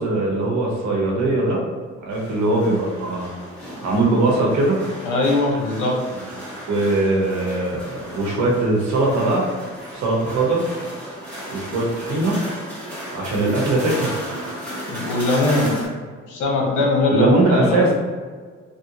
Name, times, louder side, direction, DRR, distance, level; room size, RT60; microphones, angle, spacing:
voice 1, 0.0-1.6 2.0-3.3 3.8-4.8 6.7-9.5 9.9-10.6 11.5-12.4 13.1-14.2 17.1-17.9, right 2 dB, 70° right, -2 dB, 1.1 m, -20 dB
sound 1, 2.1-15.9, equal, 5° left, 1.5 m, -35 dB
voice 2, 5.0-6.0 14.9-15.8 16.3-17.8, left 2 dB, 90° left, -1 dB, 0.9 m, -20 dB
3.1 x 2.6 x 2.9 m, 1.5 s
cardioid pair, 90°, 30 cm